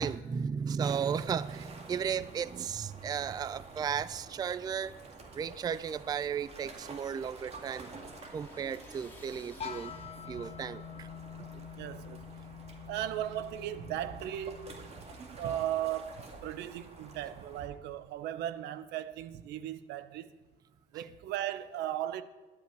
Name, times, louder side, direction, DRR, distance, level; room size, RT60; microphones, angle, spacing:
voice 1, 0.0-5.0 5.3-7.9 8.3-9.9 10.3-11.1 11.5-11.6 20.9-21.0, right 7 dB, 25° right, 0.3 m, -35 dB
sound 1, 0.8-17.7, right 3 dB, 40° right, 2.2 m, -49 dB
sound 2, 6.6-10.5, left 2 dB, 10° left, 2.3 m, -58 dB
sound 3, 9.6-15.4, left 8 dB, 35° left, 1.2 m, -46 dB
voice 2, 11.8-12.2 12.9-15.1 15.3-20.3 20.9-22.2, right 12 dB, 85° right, 0.8 m, -37 dB
12.5 x 5.8 x 9.2 m
cardioid pair, 110°, 17 cm